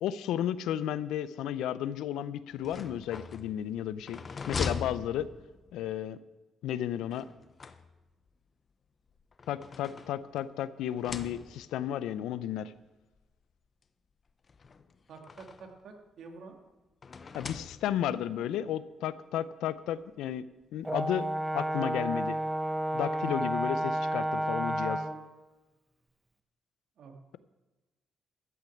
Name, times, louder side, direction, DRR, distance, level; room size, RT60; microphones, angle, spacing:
voice 1, 0.0-4.2 4.5-5.3 5.7-6.2 6.6-7.3 9.5-12.7 17.3-20.5 20.7-21.3 21.5-22.4 22.9-25.0, left 11 dB, 85° left, 16 dB, 0.5 m, -33 dB
sound 1, 2.5-5.8 7.1-8.3 9.1-10.5 10.9-11.8 12.8-12.9 13.2-13.3 14.5-15.8 17.0-18.2, left 5 dB, 40° left, 0.8 m, -41 dB
voice 2, 15.1-16.6 27.0-27.4, right 4 dB, 70° right, 3 dB, 2.1 m, -49 dB
Brass instrument, 20.8-25.2, right 1 dB, 15° right, 1.0 m, -31 dB
13.5 x 6.6 x 8.5 m, 1.2 s
cardioid pair, 90°, 0 cm